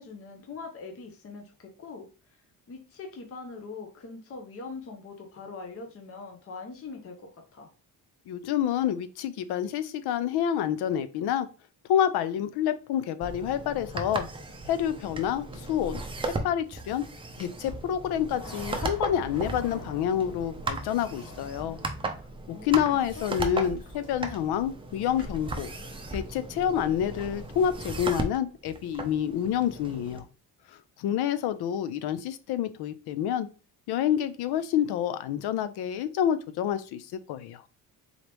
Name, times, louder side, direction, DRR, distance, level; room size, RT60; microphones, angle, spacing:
voice 1, 0.0-2.4 2.7-7.7 22.5-23.3, left 4 dB, 40° left, 3 dB, 0.7 m, -42 dB
voice 2, 8.3-11.5 11.9-14.3 14.7-17.0 17.4-21.8 22.5-25.7 26.1-30.3 31.0-33.5 33.9-37.6, left 9 dB, 90° left, 13 dB, 0.6 m, -28 dB
sound 1, 13.2-30.2, right 2 dB, 15° right, 0.5 m, -37 dB
sound 2, 18.2-22.4 22.9-28.3, left 1 dB, 60° left, 1.3 m, -45 dB
4.0 x 3.0 x 3.3 m, 0.35 s
cardioid pair, 140°, 37 cm